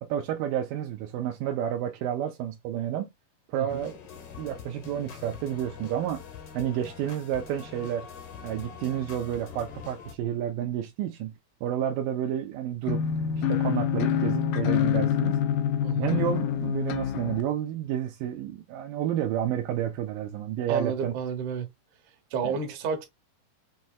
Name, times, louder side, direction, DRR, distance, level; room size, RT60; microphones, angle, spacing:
voice 1, 0.0-3.1 3.5-4.0 4.4-6.2 6.5-8.1 8.4-11.3 11.6-13.1 13.5-15.4 16.0-21.2 22.4-22.6, right 10 dB, 85° right, 2.2 m, -30 dB
voice 2, 3.5-3.9 15.8-16.1 20.7-21.7 22.3-23.1, right 6 dB, 65° right, 2.3 m, -31 dB
sound 1, 3.7-10.1, left 7 dB, 65° left, 1.4 m, -44 dB
sound 2, 12.8-17.4, left 9 dB, 85° left, 2.3 m, -26 dB
6.4 x 2.9 x 2.3 m
omnidirectional pair, 4.1 m